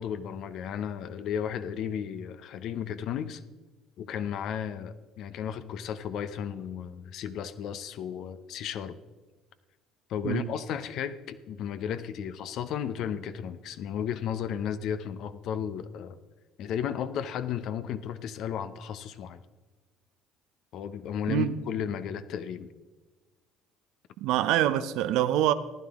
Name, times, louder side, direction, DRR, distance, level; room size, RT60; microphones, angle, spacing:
voice 1, 0.0-3.4 4.0-9.0 10.1-16.2 16.6-19.4 20.7-22.7, left 8 dB, 65° left, 0.7 m, -34 dB
voice 2, 24.2-25.5, right 12 dB, 70° right, 0.6 m, -25 dB
15.0 x 11.0 x 3.5 m
hypercardioid pair, 60°, 0 cm